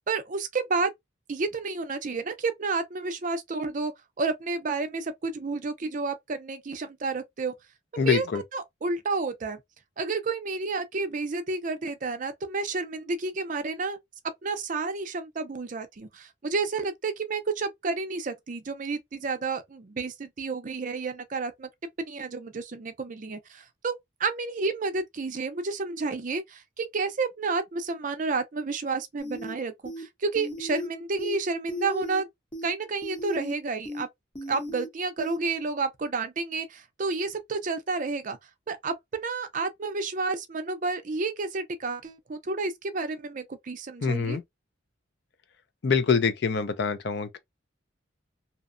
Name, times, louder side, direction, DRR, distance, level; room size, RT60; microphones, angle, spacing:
voice 1, 0.1-0.9 1.3-3.9 4.2-7.5 7.9-8.2 8.5-9.6 10.0-14.0 14.4-21.7 22.1-23.9 24.2-32.3 32.6-34.1 34.5-38.4 38.7-44.4, right 4 dB, 40° right, 0.4 m, -30 dB
voice 2, 8.0-8.4 44.0-44.4 45.8-47.4, left 5 dB, 55° left, 0.4 m, -25 dB
sound 1, 29.2-29.5 29.9-30.0 30.4-30.9 31.2-31.4 31.7-32.2 32.5-32.7 33.0-33.5 33.9-34.0 34.4-34.9 35.2-35.4, equal, 30° left, 0.8 m, -35 dB
2.8 x 2.1 x 2.5 m
head